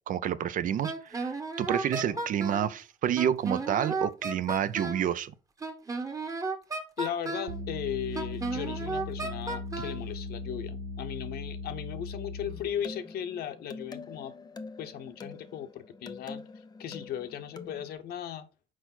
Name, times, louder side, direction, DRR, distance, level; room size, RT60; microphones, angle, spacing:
voice 1, 0.1-5.3, right 9 dB, 50° right, 0.5 m, -29 dB
Wind instrument woodwind instrument, 0.8-2.7 3.2-5.1 5.6-7.6 8.1-10.0, right 3 dB, 20° right, 1.1 m, -34 dB
voice 2, 7.0-14.3 14.8-16.4 16.8-18.5, left 9 dB, 65° left, 0.9 m, -37 dB
sound 1, 7.5-12.8, left 2 dB, 85° right, 0.9 m, -38 dB
sound 2, 12.5-17.9, left 4 dB, 25° left, 0.7 m, -45 dB
6.2 x 4.5 x 4.2 m
cardioid pair, 110°, 17 cm